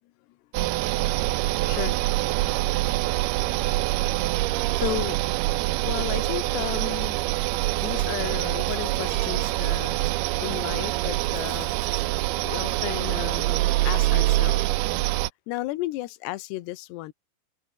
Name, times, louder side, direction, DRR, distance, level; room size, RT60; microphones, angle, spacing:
sound 1, 0.5-15.3, right 18 dB, 85° right, 2.2 m, -25 dB
voice 1, 1.6-2.0 4.8-5.2 5.8-7.2 7.8-9.9 10.4-11.7 12.4-14.6 15.5-17.1, left 17 dB, 70° left, 2.9 m, -33 dB
Chewing mastication, 6.5-12.6, right 4 dB, 25° right, 4.4 m, -51 dB
omnidirectional pair, 5.5 m